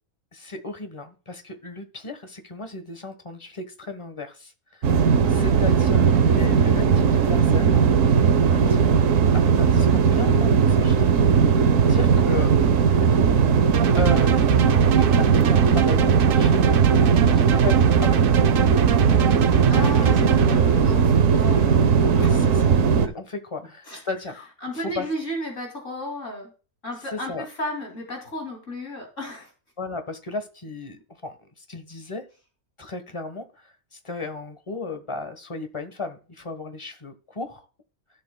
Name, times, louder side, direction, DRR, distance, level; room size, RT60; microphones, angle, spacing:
voice 1, 0.3-4.9 5.3-7.8 8.4-8.8 9.3-12.5 13.9-16.6 17.2-18.2 19.8-20.9 22.5-24.5 24.7-25.1 27.1-27.4 29.8-32.2 32.8-37.7, left 3 dB, 20° left, 9 dB, 1.1 m, -35 dB
sound 1, 4.8-23.1, right 6 dB, 65° right, 1.1 m, -18 dB
sound 2, 13.7-20.6, right 9 dB, 80° right, 0.5 m, -26 dB
voice 2, 19.7-20.4 20.7-22.4 23.9-24.0 24.6-26.5 26.8-29.5, left 1 dB, 55° left, 1 dB, 3.1 m, -33 dB
15.5 x 7.0 x 2.3 m, 0.36 s
omnidirectional pair, 1.6 m